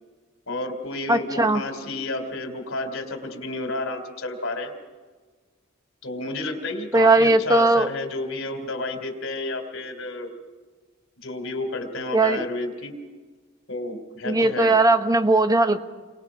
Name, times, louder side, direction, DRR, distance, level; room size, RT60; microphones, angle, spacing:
voice 1, 0.5-4.7 6.0-10.3 11.2-12.9 13.7-14.8, left 2 dB, 65° left, 5 dB, 3.3 m, -31 dB
voice 2, 1.1-1.6 6.9-7.9 12.1-12.5 14.2-15.8, right 2 dB, 20° right, 9 dB, 1.1 m, -18 dB
30.0 x 23.5 x 5.0 m, 1.4 s
head